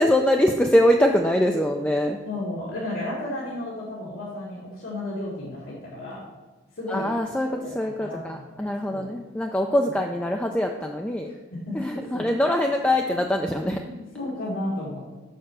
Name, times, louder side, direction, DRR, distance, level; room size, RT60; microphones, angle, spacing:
voice 1, 0.0-2.2 6.9-7.5 7.7-11.3 11.7-13.8, left 1 dB, 5° left, 2 dB, 0.3 m, -23 dB
voice 2, 2.2-6.2 6.7-7.1 7.4-9.1 11.2-12.2 13.8-15.1, left 1 dB, 80° left, -6 dB, 2.1 m, -33 dB
6.6 x 5.7 x 6.1 m, 1.2 s
head